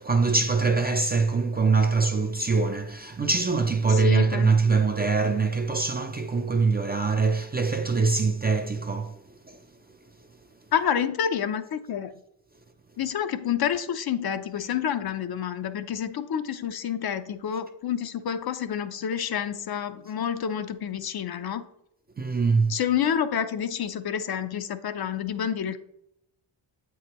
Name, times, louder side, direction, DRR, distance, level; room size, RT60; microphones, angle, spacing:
voice 1, 0.0-9.6 22.2-22.8, right 4 dB, 20° right, 0.4 m, -23 dB
voice 2, 3.9-4.5 10.7-12.1 13.0-21.6 22.7-25.8, left 8 dB, 50° left, 0.6 m, -28 dB
7.7 x 4.7 x 3.0 m
cardioid pair, 80°, 47 cm